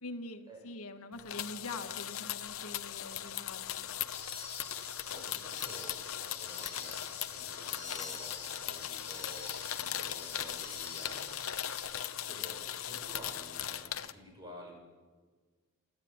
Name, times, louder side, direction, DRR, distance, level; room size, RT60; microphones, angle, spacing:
voice 1, 0.0-3.9, left 2 dB, 85° left, 6 dB, 1.6 m, -44 dB
sound 1, 1.2-14.1, left 11 dB, 65° left, 0.9 m, -39 dB
sound 2, 4.1-11.8, left 3 dB, 15° left, 7.5 m, -48 dB
voice 2, 4.7-14.8, equal, 20° right, 0 dB, 6.9 m, -52 dB
28.0 x 12.0 x 8.8 m, 1.4 s
head